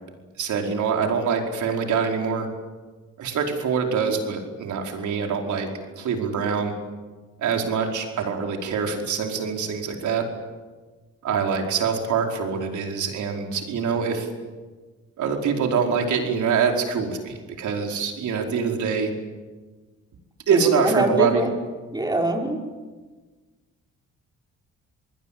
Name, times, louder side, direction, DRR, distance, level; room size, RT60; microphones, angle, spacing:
voice 1, 0.4-2.5 3.2-5.7 6.0-6.7 7.4-10.2 11.2-14.3 15.2-19.1 20.5-21.5, right 6 dB, 75° right, 2 dB, 5.0 m, -24 dB
voice 2, 20.5-21.5 21.9-22.6, right 2 dB, 15° right, 1 dB, 5.2 m, -23 dB
28.0 x 20.5 x 8.8 m, 1.3 s
cardioid pair, 90°, 30 cm